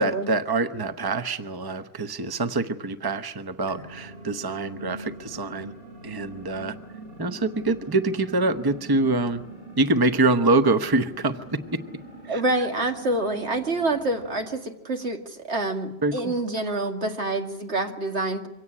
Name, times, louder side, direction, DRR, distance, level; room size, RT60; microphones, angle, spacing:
voice 1, 0.0-5.7 6.0-6.8 7.2-9.4 9.8-11.6 12.2-12.4 16.0-16.3, right 2 dB, 20° right, 9 dB, 1.0 m, -25 dB
sound 1, 3.7-14.6, right 2 dB, 40° right, 7.5 m, -43 dB
voice 2, 12.3-18.5, right 2 dB, 85° right, 4 dB, 2.6 m, -27 dB
24.5 x 17.5 x 9.8 m, 0.92 s
omnidirectional pair, 1.1 m